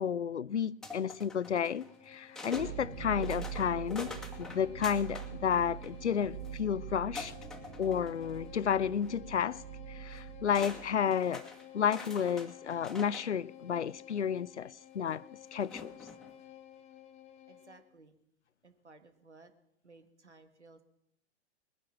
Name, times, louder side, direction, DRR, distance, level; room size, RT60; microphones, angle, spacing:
voice 1, 0.0-4.1 4.4-7.3 7.8-9.6 9.9-11.5 11.7-15.3 15.5-15.9, left 8 dB, 90° left, 0.5 m, -32 dB
sound 1, 0.8-2.7 3.2-5.3 5.7-6.5 7.2-8.6 8.9-9.1 10.1-10.2 10.5-13.3 14.1-14.2 15.6-16.3, left 3 dB, ahead, 2.0 m, -46 dB
Bowed string instrument, 1.3-17.9, left 10 dB, 20° left, 1.2 m, -53 dB
sound 2, 2.5-11.1, right 10 dB, 45° right, 1.8 m, -44 dB
voice 2, 17.5-18.2 18.6-19.5 19.8-20.8, right 3 dB, 85° right, 1.6 m, -58 dB
20.5 x 10.0 x 6.0 m
figure-of-eight pair, 100°, 33 cm